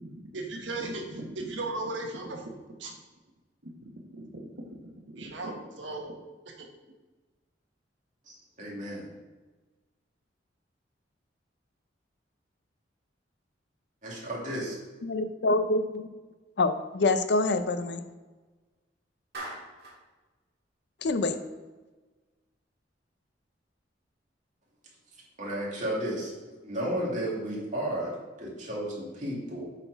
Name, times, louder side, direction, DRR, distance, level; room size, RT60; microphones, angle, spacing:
voice 1, 0.0-2.9 3.8-4.7 5.1-6.1 6.6-6.7, right 2 dB, 90° right, 1 dB, 1.3 m, -37 dB
voice 2, 8.3-9.1 14.0-14.7 25.4-26.3 26.6-29.6, right 1 dB, 40° right, -4 dB, 2.1 m, -33 dB
voice 3, 15.0-16.1 16.6-18.0 21.0-21.4, left 2 dB, 65° left, 10 dB, 0.5 m, -26 dB
Clapping, 19.3-20.0, right 2 dB, 60° right, 1.9 m, -40 dB
7.8 x 4.2 x 4.5 m, 1.2 s
head